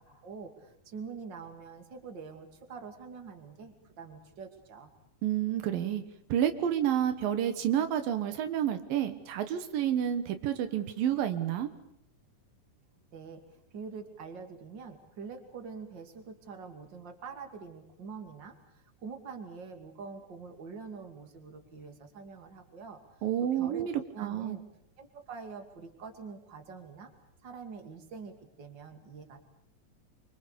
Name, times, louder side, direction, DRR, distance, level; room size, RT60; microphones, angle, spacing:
voice 1, 0.0-4.9 13.1-13.4 13.7-23.0 23.4-24.6 25.0-27.1 27.4-29.4, right 5 dB, 35° right, 6 dB, 3.0 m, -45 dB
voice 2, 5.2-6.0 6.3-11.7 23.2-24.6, right 10 dB, 80° right, 9 dB, 3.1 m, -29 dB
26.0 x 24.5 x 6.9 m, 0.74 s
omnidirectional pair, 4.0 m